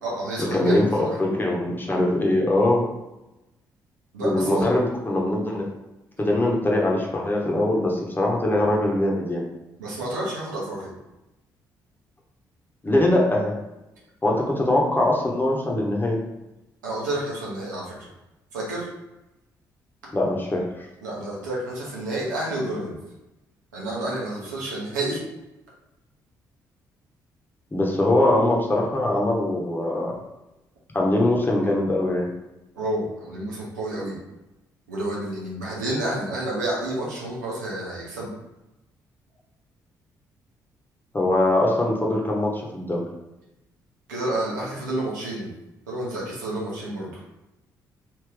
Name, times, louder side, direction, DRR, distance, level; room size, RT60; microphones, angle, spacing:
voice 1, 0.0-1.2 4.1-4.7 9.8-10.9 16.8-18.1 18.5-18.9 21.0-22.9 23.7-25.2 32.7-34.1 34.9-38.3 44.1-45.5 45.9-47.2, right 1 dB, 80° right, -5 dB, 0.9 m, -29 dB
voice 2, 0.5-2.8 4.2-5.7 6.2-9.4 12.8-13.6 14.2-16.2 20.1-20.9 27.7-30.1 30.9-32.3 41.1-43.0, left 1 dB, 20° left, -2 dB, 1.0 m, -22 dB
3.4 x 3.0 x 3.4 m, 0.97 s
figure-of-eight pair, 45°, 10 cm